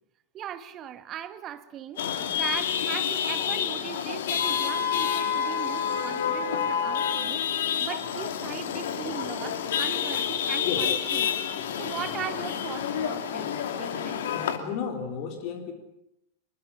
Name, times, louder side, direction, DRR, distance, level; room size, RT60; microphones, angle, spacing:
voice 1, 0.3-2.0 2.3-11.3 11.8-13.5 13.8-14.2, right 10 dB, 30° right, 11 dB, 2.1 m, -39 dB
Chatter / Vehicle horn car horn honking / Traffic noise roadway noise, 2.0-14.6, left 8 dB, 60° left, 2.8 m, -28 dB
voice 2, 14.3-15.7, left 7 dB, 40° left, 4 dB, 3.8 m, -33 dB
26.0 x 22.5 x 8.7 m, 0.82 s
figure-of-eight pair, 90°, 0 cm